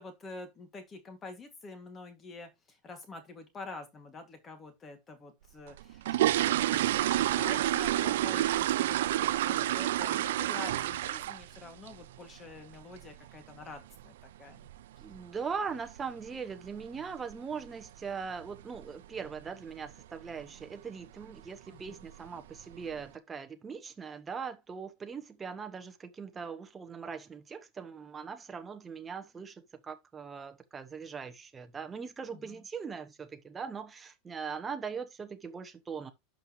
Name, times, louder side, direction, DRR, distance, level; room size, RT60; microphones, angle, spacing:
voice 1, 0.0-14.6 21.7-22.1 32.3-32.6, left 3 dB, 20° left, 2.2 m, -47 dB
sound 1, 5.7-11.6 11.9-12.2 12.5-12.6 13.0-13.1 13.5-13.7 14.0-14.1 14.7-14.8 15.0-15.2 15.7-16.0 16.3-16.4 16.8-17.0 17.3-17.4 17.8-17.9 18.5-18.8 19.2-19.5 19.9-20.0 20.4-20.5 21.2-21.4 21.8-22.3 22.7-22.8, right 14 dB, 85° right, 0.4 m, -29 dB
voice 2, 15.0-36.1, right 6 dB, 15° right, 1.0 m, -40 dB
11.5 x 5.5 x 3.1 m
supercardioid pair, 150°, 0 cm